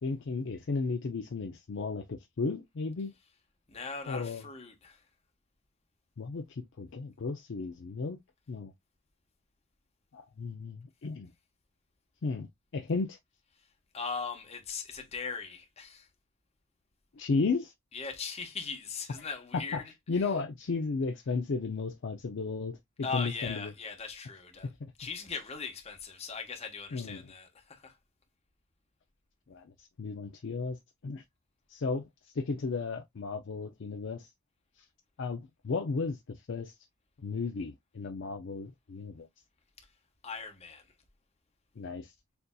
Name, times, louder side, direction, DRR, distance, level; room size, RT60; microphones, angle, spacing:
voice 1, 0.0-3.1 4.1-4.4 6.2-8.2 8.5-8.7 10.1-11.3 12.2-12.5 12.7-13.2 17.2-17.7 19.5-19.8 20.1-23.7 24.8-24.9 26.9-27.3 29.5-31.2 31.7-32.1 32.3-34.3 34.8-34.9 35.2-36.7 37.2-39.3 41.8-42.1, left 4 dB, 55° left, 0.5 m, -34 dB
voice 2, 3.7-5.0 13.9-16.1 17.9-19.8 23.0-24.7 25.0-28.0 39.8-39.9 40.2-40.8, left 5 dB, 30° left, 1.1 m, -39 dB
6.7 x 2.6 x 2.2 m
head